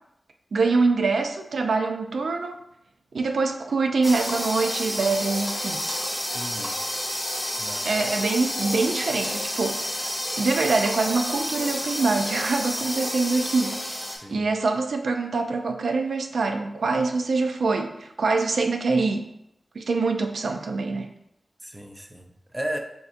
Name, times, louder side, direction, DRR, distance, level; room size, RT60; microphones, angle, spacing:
voice 1, 0.5-2.6 3.1-6.0 7.8-10.1 10.4-14.0 14.3-19.3 19.8-21.1, right 3 dB, 85° right, 5 dB, 0.4 m, -24 dB
sound 1, 4.0-14.2, left 1 dB, 15° left, 1.0 m, -30 dB
voice 2, 6.3-6.8 7.6-7.9 14.1-14.5 21.6-22.8, right 1 dB, 10° right, 3 dB, 0.5 m, -35 dB
6.8 x 2.6 x 2.5 m, 0.79 s
wide cardioid pair, 105°, 0 cm